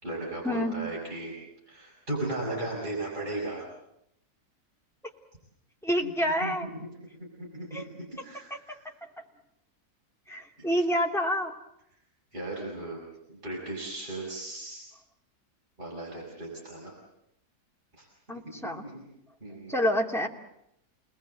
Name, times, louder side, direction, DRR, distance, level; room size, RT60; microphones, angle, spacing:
voice 1, 0.0-1.3 1.7-3.6 6.0-6.1 6.4-6.8 7.4-8.8 10.6-10.8 12.3-13.0 13.3-14.8 15.8-16.9 17.9-18.1 18.6-19.0 19.4-19.8, right 2 dB, 30° right, -4 dB, 6.2 m, -36 dB
voice 2, 5.8-6.7 7.7-7.8 10.3-11.5 18.3-18.8 19.7-20.3, equal, ahead, 0 dB, 2.9 m, -27 dB
29.5 x 20.0 x 7.9 m, 0.79 s
omnidirectional pair, 1.7 m